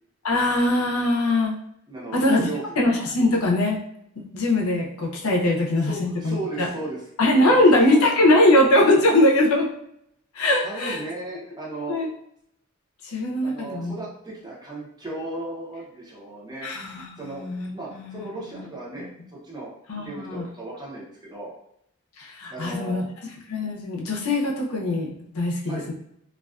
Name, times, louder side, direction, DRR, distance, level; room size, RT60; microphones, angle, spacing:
voice 1, 0.2-1.6 2.1-2.5 2.8-3.8 4.2-6.7 7.2-9.7 10.3-11.0 11.9-12.1 13.0-13.9 16.6-18.6 19.0-19.1 19.9-20.5 22.2-23.1 23.5-25.9, left 1 dB, 80° left, -1 dB, 0.5 m, -21 dB
voice 2, 1.9-2.6 5.8-7.0 7.5-8.1 10.6-12.0 13.4-17.4 17.7-19.1 19.4-19.7 20.0-21.5 22.5-23.0 25.7-25.9, right 2 dB, 20° right, -5 dB, 0.6 m, -35 dB
2.3 x 2.2 x 2.3 m, 0.74 s
head